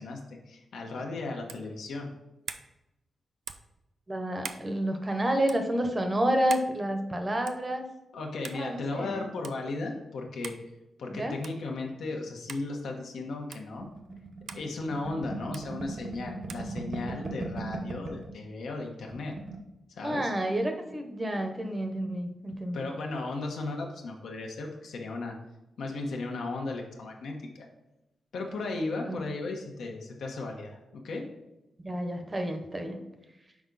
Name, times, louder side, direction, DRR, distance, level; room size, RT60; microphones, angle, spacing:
voice 1, 0.0-2.1 8.1-10.5 11.0-13.9 14.5-19.3 19.9-20.3 22.7-25.4 25.8-27.7 28.3-31.3, left 3 dB, 80° left, 1 dB, 1.2 m, -35 dB
sound 1, 1.5-1.7 2.5-2.7 3.5-3.7 4.4-4.7 5.4-5.6 6.5-6.7 7.5-7.7 8.4-8.6 9.4-9.6 10.4-10.6 11.4-11.6 12.5-12.7 13.5-13.7 14.5-14.7 15.5-15.7 16.5-16.7, right 6 dB, 70° right, 0.4 m, -41 dB
voice 2, 4.1-7.8 8.5-9.3 11.1-11.4 20.0-22.9 29.1-29.2 31.8-33.0, right 1 dB, 20° right, 5 dB, 0.8 m, -30 dB
sound 2, 13.8-18.3 18.7-18.8 19.0-19.6, right 3 dB, 50° right, 0.9 m, -38 dB
6.2 x 4.8 x 4.0 m, 0.96 s
wide cardioid pair, 135°, 0 cm